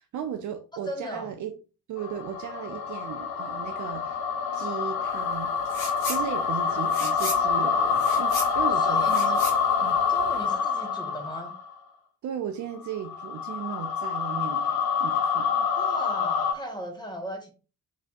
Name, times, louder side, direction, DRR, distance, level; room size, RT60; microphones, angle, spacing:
voice 1, 0.0-1.5 1.9-4.2 4.5-5.5 6.0-9.4 9.8-10.0 12.2-15.7, right 8 dB, 40° right, 6 dB, 0.6 m, -36 dB
voice 2, 0.9-1.3 7.6-7.7 8.7-9.6 10.1-11.5 15.7-17.5, right 1 dB, 10° left, 4 dB, 1.3 m, -37 dB
sound 1, 2.0-11.7 12.8-16.5, left 6 dB, 50° left, 0.9 m, -26 dB
sound 2, 5.7-6.2 6.5-10.5, left 1 dB, 75° left, 1.8 m, -36 dB
4.2 x 3.9 x 2.4 m, 0.33 s
figure-of-eight pair, 45°, 46 cm